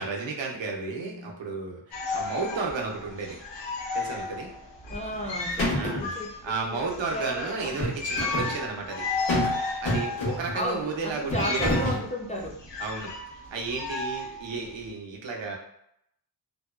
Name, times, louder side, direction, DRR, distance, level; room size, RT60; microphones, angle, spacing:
voice 1, 0.0-1.8 2.1-3.4 3.9-4.5 5.7-6.1 6.4-9.1 9.8-11.8 12.8-15.6, right 4 dB, 85° right, 1 dB, 0.6 m, -33 dB
voice 2, 0.9-1.3 4.9-7.9 8.4-8.9 10.5-12.7, equal, 20° left, -2 dB, 0.3 m, -35 dB
sound 1, 1.9-14.9, left 3 dB, 75° left, 0.6 m, -34 dB
sound 2, 4.9-5.3 5.6-6.1 7.6-8.5 9.3-9.6 9.9-10.6 11.3-12.1, left 1 dB, 90° left, 1.0 m, -28 dB
2.7 x 2.2 x 2.2 m, 0.75 s
wide cardioid pair, 110°, 43 cm